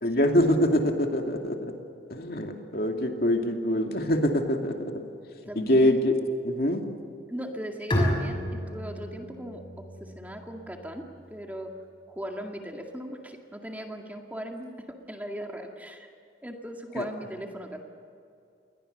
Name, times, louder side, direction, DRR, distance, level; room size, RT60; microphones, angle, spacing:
voice 1, 0.0-1.7 2.1-4.9 5.6-6.1 6.4-6.8 17.0-17.1, left 1 dB, 55° left, 3 dB, 2.5 m, -24 dB
voice 2, 5.5-6.0 7.3-11.1 11.3-11.7 12.1-16.1 16.4-17.8, equal, 10° right, 2 dB, 2.1 m, -38 dB
Bowed string instrument, 7.9-11.4, equal, 30° left, 6.2 m, -31 dB
28.5 x 21.5 x 6.8 m, 2.6 s
head